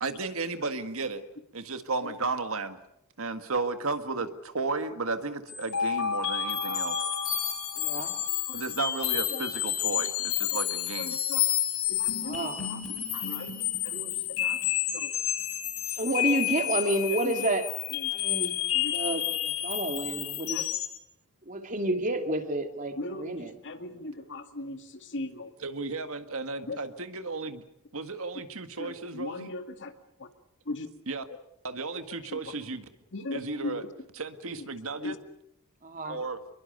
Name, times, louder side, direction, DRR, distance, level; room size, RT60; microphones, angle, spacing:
voice 1, 0.0-1.2 1.5-2.8 3.2-7.0 8.5-11.2 25.6-27.6 27.9-29.5 31.1-31.2 31.6-32.9 33.3-33.8 34.2-35.2 36.1-36.4, right 3 dB, 65° right, 9 dB, 1.8 m, -34 dB
sound 1, 5.5-21.0, left 11 dB, 75° left, 3.7 m, -30 dB
voice 2, 7.8-8.2 12.2-12.6 15.9-17.7 18.1-18.5 18.9-20.7 21.5-23.5 35.8-36.2, right 1 dB, 35° right, 6 dB, 2.6 m, -30 dB
voice 3, 11.0-11.4 11.9-12.8 13.1-13.5 13.8-14.6 15.0-15.1 17.1-17.3 17.9-18.1 18.7-18.9 20.5-20.7 23.0-25.5 26.7-26.8 28.8-29.9 30.2-30.3 30.7-30.9 32.3-32.4 33.1-33.9 34.4-34.5 35.0-35.2 36.0-36.2, left 2 dB, 55° left, 7 dB, 2.1 m, -38 dB
27.0 x 22.5 x 6.7 m, 0.80 s
head